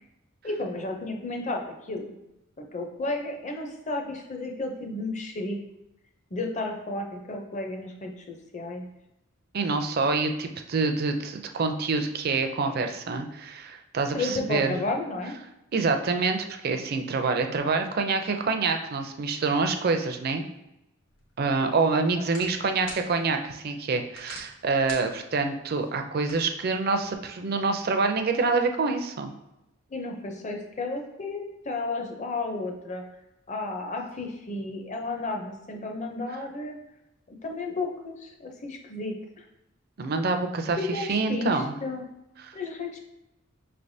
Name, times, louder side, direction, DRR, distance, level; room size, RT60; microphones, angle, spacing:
voice 1, 0.4-2.2 2.6-5.6 6.3-8.1 8.5-8.8 14.1-15.3 22.2-22.3 29.9-33.0 33.5-36.8 37.3-39.4 40.8-42.0 42.5-43.0, left 2 dB, 35° left, 3 dB, 0.6 m, -32 dB
voice 2, 9.5-14.8 15.7-20.4 21.4-29.3 40.0-41.7, right 4 dB, 50° right, 6 dB, 0.4 m, -26 dB
sound 1, 21.1-27.1, left 2 dB, 70° left, 1.2 m, -48 dB
5.4 x 3.3 x 2.7 m, 0.90 s
head